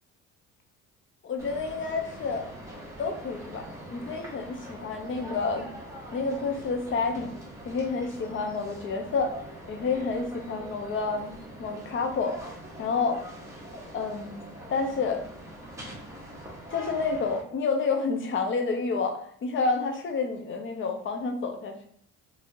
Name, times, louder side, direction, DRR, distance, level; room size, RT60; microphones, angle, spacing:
voice 1, 1.2-2.5 3.0-5.7 6.1-7.4 7.6-9.4 9.7-12.4 12.8-13.2 13.9-14.4 14.7-15.3 16.7-21.9, left 4 dB, 40° left, 4 dB, 0.6 m, -29 dB
sound 1, 1.4-17.4, right 1 dB, 10° right, 1.0 m, -43 dB
2.8 x 2.7 x 2.6 m, 0.66 s
cardioid pair, 105°, 30 cm